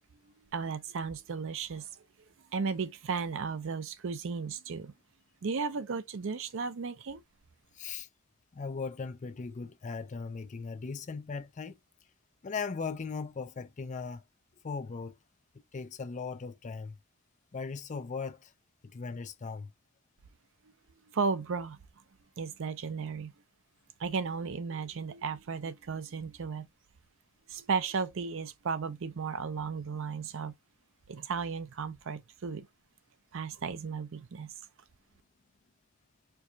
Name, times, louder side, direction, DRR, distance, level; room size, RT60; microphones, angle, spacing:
voice 1, 0.5-1.9 2.5-4.9 5.4-7.2 21.1-21.8 22.4-23.3 24.0-26.7 27.5-30.5 31.1-32.7 33.3-34.5, right 5 dB, 65° right, 0.5 m, -34 dB
voice 2, 7.7-8.1 8.5-11.8 12.4-14.2 14.6-15.2 15.7-16.9 17.5-18.5 18.9-19.7, left 5 dB, 35° left, 0.4 m, -38 dB
4.6 x 2.3 x 2.6 m
head